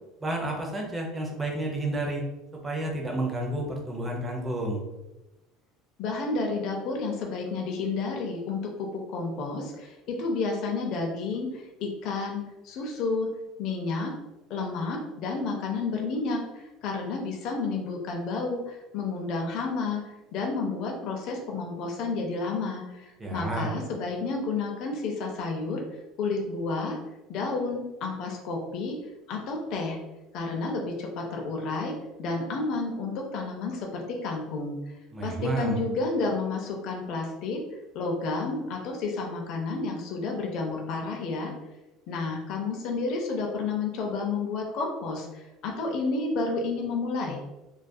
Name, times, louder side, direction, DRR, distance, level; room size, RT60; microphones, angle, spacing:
voice 1, 0.2-2.2 2.6-4.8 23.2-23.7 35.1-35.8, right 1 dB, 10° right, 0 dB, 0.4 m, -30 dB
voice 2, 6.0-13.3 13.6-14.1 14.5-25.8 26.2-27.0 27.3-28.9 29.3-30.0 30.3-31.9 32.2-34.8 35.2-37.6 37.9-41.5 42.1-47.4, left 3 dB, 50° left, 1 dB, 0.4 m, -31 dB
2.3 x 2.2 x 2.5 m, 1.0 s
cardioid pair, 170°, 0 cm